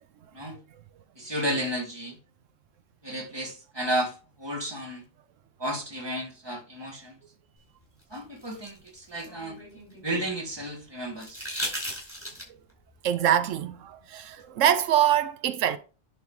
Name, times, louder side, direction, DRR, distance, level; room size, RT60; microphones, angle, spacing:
voice 1, 1.2-2.2 3.0-5.0 5.6-7.2 8.1-9.6 10.0-11.5, right 1 dB, 20° right, 1.6 m, -32 dB
sound 1, 8.0-10.3 11.2-12.7 14.4-14.5, equal, 10° left, 4.9 m, -37 dB
voice 2, 13.0-15.8, right 10 dB, 85° right, 1.0 m, -24 dB
10.5 x 3.6 x 4.6 m
omnidirectional pair, 1.3 m